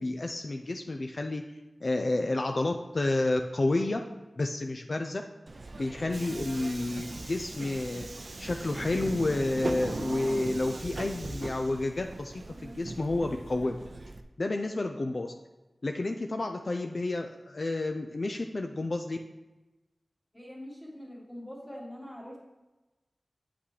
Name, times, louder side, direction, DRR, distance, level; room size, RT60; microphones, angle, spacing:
voice 1, 0.0-1.4 1.8-4.0 4.4-5.2 5.8-8.1 8.4-13.8 14.4-15.3 15.8-19.2, left 2 dB, 55° left, 4 dB, 0.4 m, -30 dB
Subway metro underground, 5.5-14.2, right 2 dB, 55° right, 0.5 m, -39 dB
voice 2, 20.3-22.4, equal, 5° left, -4 dB, 2.0 m, -43 dB
8.3 x 5.8 x 3.2 m, 1.1 s
wide cardioid pair, 80°, 0 cm